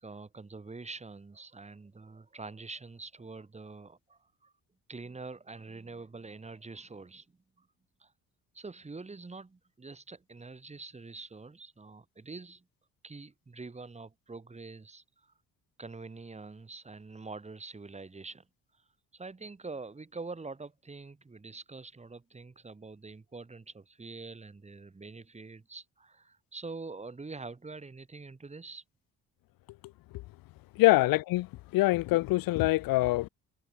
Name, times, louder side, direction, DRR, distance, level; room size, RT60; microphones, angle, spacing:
voice 1, 0.0-4.5 4.9-7.3 7.6-7.7 8.0-8.1 8.5-12.6 13.0-15.0 15.8-18.4 19.1-28.8, right 3 dB, 20° right, 2.3 m, -45 dB
voice 2, 30.8-31.5 31.7-33.3, left 19 dB, 75° left, 0.6 m, -24 dB
cardioid pair, 95°, 34 cm